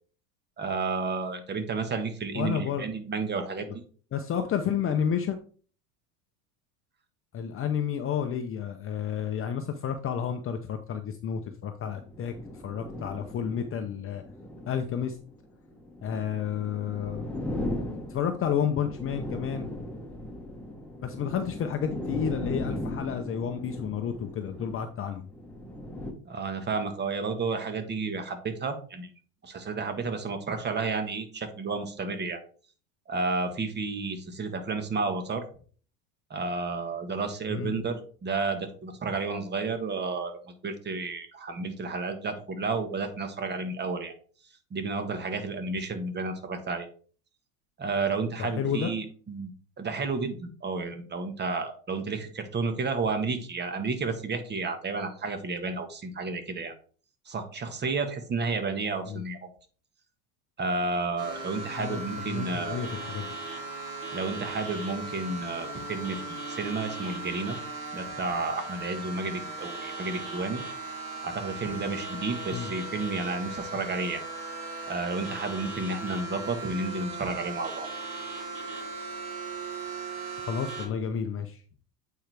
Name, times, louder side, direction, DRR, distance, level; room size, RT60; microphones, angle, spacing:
voice 1, 0.6-3.8 26.3-29.1 29.4-32.4 33.1-35.4 36.3-44.1 44.7-46.9 47.8-49.5 49.8-56.7 57.3-59.5 60.6-62.8 64.1-67.6 67.9-70.6 71.2-74.2 74.9-77.9, right 4 dB, 25° right, 8 dB, 1.5 m, -31 dB
voice 2, 2.3-2.9 4.1-5.4 7.3-14.2 14.7-15.2 16.0-17.3 18.1-19.7 21.0-25.3 37.5-37.8 48.4-48.9 59.1-59.2 61.8-63.4 72.5-72.7 80.4-81.6, left 8 dB, 35° left, 7 dB, 0.7 m, -31 dB
sound 1, 11.9-26.1, left 1 dB, 5° left, 1.4 m, -38 dB
sound 2, 61.2-80.9, right 3 dB, 65° right, 3.0 m, -38 dB
8.6 x 4.6 x 3.4 m, 0.42 s
supercardioid pair, 105°, 40 cm